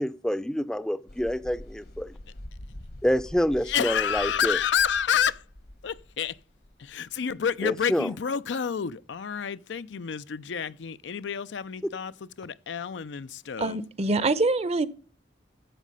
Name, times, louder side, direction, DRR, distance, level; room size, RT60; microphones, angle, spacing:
voice 1, 0.0-2.1 3.0-4.6 7.6-8.1, equal, 5° left, 0.5 m, -27 dB
sound 1, 1.1-7.7, left 1 dB, 60° left, 1.1 m, -45 dB
voice 2, 3.6-5.4 5.8-6.4 6.8-13.8, left 7 dB, 85° left, 0.5 m, -29 dB
voice 3, 13.6-14.9, right 3 dB, 35° right, 0.7 m, -24 dB
12.0 x 7.4 x 5.4 m
head